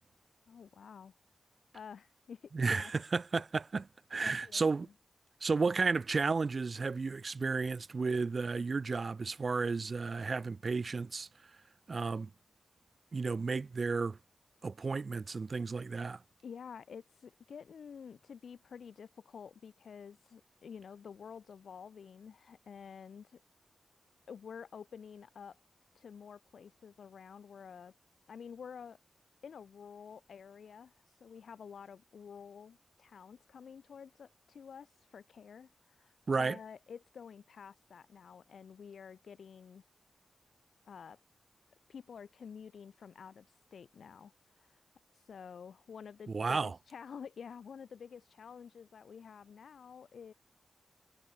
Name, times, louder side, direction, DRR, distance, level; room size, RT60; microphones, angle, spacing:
voice 1, 0.5-1.2 1.7-2.9 4.2-4.7 16.4-23.4 24.3-25.6 25.9-27.9 28.3-29.0 29.4-39.8 40.9-41.2 41.9-44.8 45.1-50.3, left 6 dB, 85° left, 3.1 m, -50 dB
voice 2, 2.5-4.9 5.4-11.3 11.9-12.3 13.1-14.2 14.6-16.2 36.3-36.6 46.3-46.7, right 4 dB, 45° right, 1.0 m, -33 dB
wide cardioid pair, 115°, 0 cm